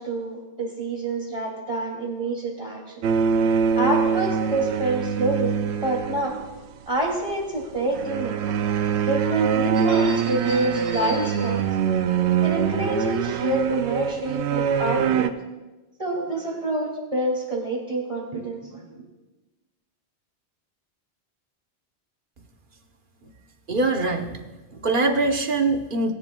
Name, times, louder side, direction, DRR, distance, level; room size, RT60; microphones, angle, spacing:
voice 1, 0.0-3.0 3.8-5.5 5.8-6.4 6.9-8.4 9.0-11.6 12.4-15.3 16.0-19.0, right 2 dB, 30° right, -2 dB, 2.9 m, -27 dB
sound 1, 3.0-6.6 7.9-15.3, right 7 dB, 85° right, 0.9 m, -24 dB
voice 2, 23.7-24.3 24.7-26.1, right 2 dB, 50° right, 4 dB, 1.2 m, -23 dB
20.0 x 10.5 x 2.3 m, 1.1 s
omnidirectional pair, 1.1 m